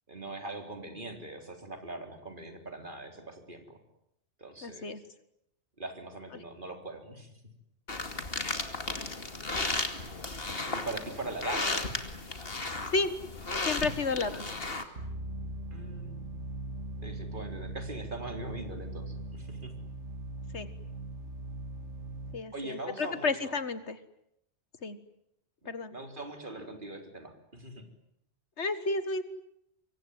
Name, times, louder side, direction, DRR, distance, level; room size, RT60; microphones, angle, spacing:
voice 1, 0.1-3.8 4.4-4.9 5.8-7.4 10.7-11.8 15.7-16.3 17.0-19.7 22.5-23.6 25.9-27.9, right 2 dB, 45° right, 5 dB, 4.2 m, -41 dB
voice 2, 4.6-5.0 6.3-6.4 8.9-9.1 12.9-13.1 13.6-14.6 20.5-20.7 22.3-24.0 24.8-25.0 25.7-26.0 28.6-29.2, left 3 dB, 75° left, 12 dB, 1.9 m, -32 dB
sound 1, 7.9-14.8, left 3 dB, 55° left, 2.7 m, -34 dB
sound 2, 15.0-22.3, right 2 dB, 85° right, 2.4 m, -40 dB
26.0 x 24.0 x 9.5 m, 0.78 s
omnidirectional pair, 1.2 m